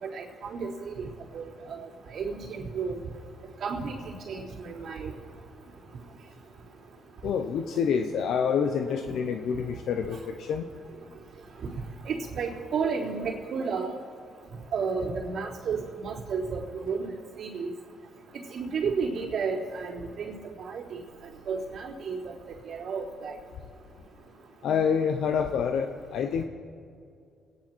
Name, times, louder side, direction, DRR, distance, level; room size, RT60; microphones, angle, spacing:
voice 1, 0.0-1.1 1.3-3.0 3.6-4.0 4.3-5.1 12.1-13.9 14.7-17.1 17.4-17.7 18.5-20.3 20.6-20.8 21.5-22.2 22.7-23.4, right 5 dB, 60° right, -5 dB, 3.7 m, -32 dB
voice 2, 7.2-10.6 24.6-26.4, left 7 dB, 75° left, 6 dB, 0.8 m, -27 dB
26.5 x 10.5 x 4.6 m, 2.4 s
cardioid pair, 90°, 0 cm